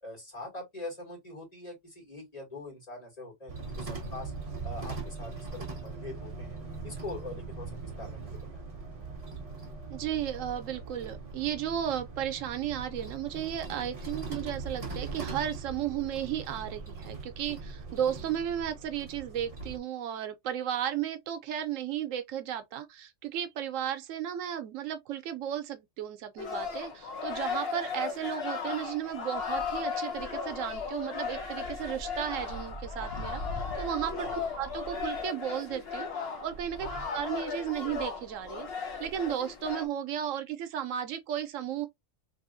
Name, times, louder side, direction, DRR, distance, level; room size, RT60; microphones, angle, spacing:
voice 1, 0.0-4.3 4.6-8.6 34.2-34.4 36.8-37.0, left 2 dB, 30° left, 2.3 m, -43 dB
sound 1, 3.5-19.8, right 4 dB, 30° right, 0.9 m, -40 dB
voice 2, 9.9-38.7 39.0-41.9, right 10 dB, 85° right, 1.0 m, -34 dB
sound 2, 26.4-39.9, left 5 dB, 55° left, 1.1 m, -36 dB
3.4 x 3.0 x 2.5 m
omnidirectional pair, 1.3 m